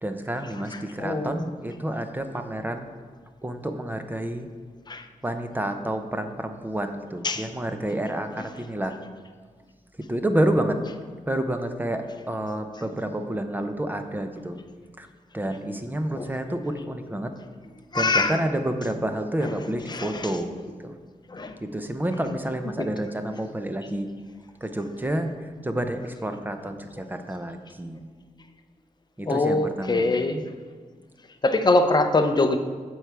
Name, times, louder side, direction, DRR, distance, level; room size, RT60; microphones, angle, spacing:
voice 1, 0.0-2.9 3.4-4.5 5.2-9.0 10.1-10.8 11.3-14.6 15.0-15.1 15.3-17.3 17.9-20.5 20.8-20.9 21.6-24.1 24.6-25.3 25.6-28.0 29.2-30.1, right 1 dB, 15° right, 7 dB, 0.6 m, -29 dB
voice 2, 1.0-1.5 4.9-5.0 7.2-7.5 16.2-16.3 17.9-18.3 19.9-20.3 21.3-21.5 29.3-30.4 31.4-32.6, left 2 dB, 30° left, 8 dB, 0.6 m, -23 dB
7.8 x 4.7 x 6.9 m, 1.6 s
wide cardioid pair, 105°, 14 cm